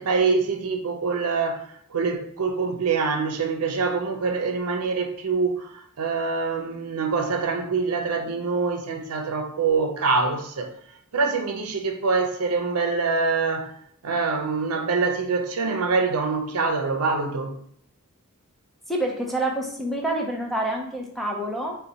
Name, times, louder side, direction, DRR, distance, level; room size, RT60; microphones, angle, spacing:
voice 1, 0.0-10.7 11.1-13.7 14.0-17.6, right 4 dB, 85° right, 0.6 m, -25 dB
voice 2, 18.9-21.8, right 1 dB, ahead, 0.5 m, -27 dB
3.9 x 2.2 x 3.9 m
head